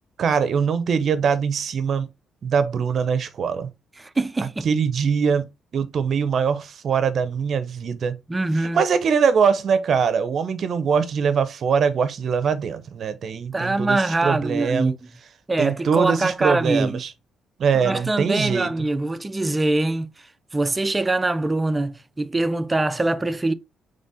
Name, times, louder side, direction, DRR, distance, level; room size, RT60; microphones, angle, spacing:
voice 1, 0.2-2.1 2.4-3.7 4.6-5.5 5.7-8.2 8.7-14.9 15.6-17.1 17.6-18.7, right 6 dB, 55° right, 0.6 m, -22 dB
voice 2, 4.0-4.7 8.3-8.8 13.5-15.0 15.5-17.0 17.7-20.3 20.5-23.5, right 2 dB, 20° right, 0.4 m, -23 dB
4.0 x 3.3 x 3.6 m
cardioid pair, 90°, 0 cm